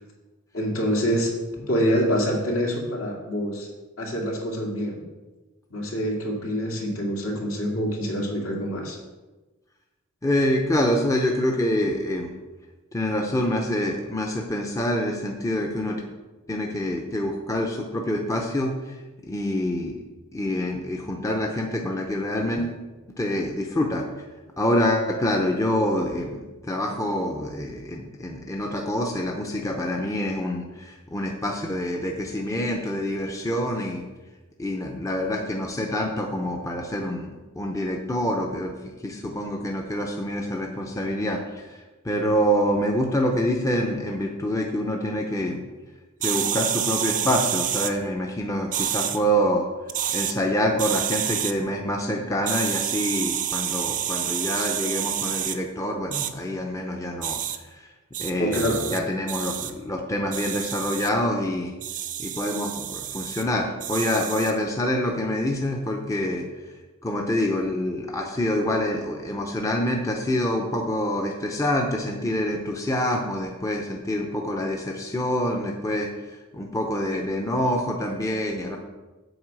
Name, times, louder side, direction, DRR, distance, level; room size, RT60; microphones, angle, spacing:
voice 1, 0.5-1.3 1.7-3.7 4.0-5.0 5.7-9.0 58.4-58.8, equal, 70° left, -1 dB, 2.4 m, -26 dB
voice 2, 10.2-12.4 12.9-16.0 16.5-19.0 19.2-20.0 20.3-22.8 23.2-24.1 24.6-34.0 34.6-38.7 39.0-45.6 46.2-49.7 50.1-57.9 58.2-61.7 62.2-66.5 67.0-78.8, left 1 dB, 15° left, 1 dB, 0.7 m, -26 dB
sound 1, 46.2-47.9 48.7-49.2 49.9-50.3 50.8-51.5 52.5-55.6 56.1-56.3 57.2-57.6 58.1-59.0 59.3-59.7 60.3-61.1 61.8-63.4 63.8-64.6, right 10 dB, 35° right, 0.5 m, -28 dB
7.9 x 4.8 x 7.4 m, 1.2 s
head